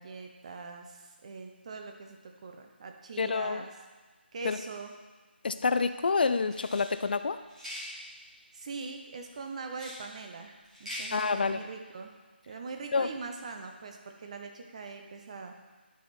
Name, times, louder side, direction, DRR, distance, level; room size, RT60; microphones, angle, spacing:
voice 1, 0.0-3.7 4.3-4.9 8.5-12.2 12.5-15.6, right 4 dB, 35° right, 4 dB, 0.8 m, -42 dB
voice 2, 3.2-3.6 4.4-4.6 5.4-7.4 11.1-11.6 12.9-13.1, left 4 dB, 55° left, 11 dB, 0.4 m, -28 dB
sound 1, 6.5-6.9 7.5-7.9 9.7-10.0 10.6-11.1, left 1 dB, 5° right, 1.5 m, -41 dB
11.5 x 4.3 x 4.1 m, 1.3 s
figure-of-eight pair, 165°, 6 cm